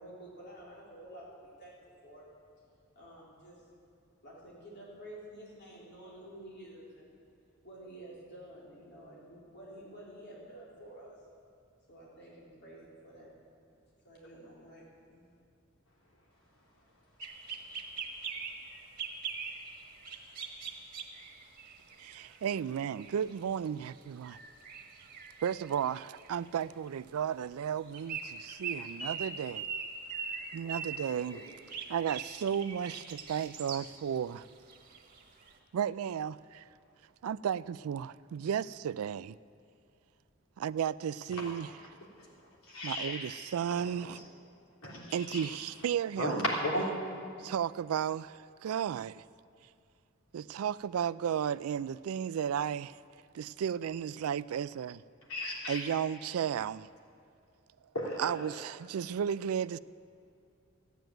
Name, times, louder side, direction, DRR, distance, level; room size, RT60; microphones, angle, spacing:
voice 1, 0.0-1.8 2.0-2.2 3.0-3.6 4.2-7.1 7.6-11.2 11.9-13.3 14.0-15.2, right 1 dB, 55° left, 3.7 m, -50 dB
sound 1, 17.2-23.3 23.8-23.9 24.2-26.9 27.8-34.0 34.4-35.5, right 5 dB, 45° right, 1.5 m, -42 dB
voice 2, 22.0-24.4 25.4-29.7 30.5-31.4 31.9-34.5 35.7-36.6 37.2-39.4 40.6-41.7 42.8-44.2 45.1-46.4 47.4-49.2 50.3-53.0 53.3-55.0 55.7-56.9 58.2-59.8, right 8 dB, 90° right, 0.3 m, -34 dB
voice 3, 42.6-43.3 44.8-45.5 46.2-46.9 55.3-55.8 57.9-58.5, left 1 dB, 90° left, 3.4 m, -34 dB
14.0 x 9.2 x 9.1 m
head